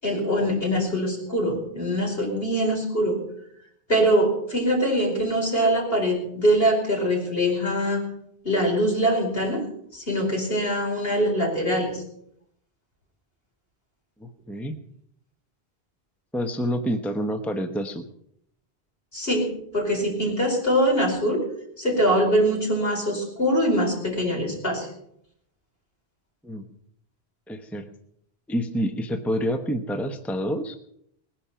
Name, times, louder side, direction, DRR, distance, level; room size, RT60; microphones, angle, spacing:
voice 1, 0.0-3.2 3.9-8.0 8.4-9.6 9.9-12.0 19.1-19.5 19.7-21.4 21.8-24.9, equal, 65° left, 0 dB, 5.4 m, -23 dB
voice 2, 14.2-14.7 16.3-18.1 26.4-26.7 27.5-27.9 28.5-30.8, equal, ahead, 6 dB, 0.9 m, -28 dB
20.0 x 10.5 x 5.8 m, 0.72 s
omnidirectional pair, 1.1 m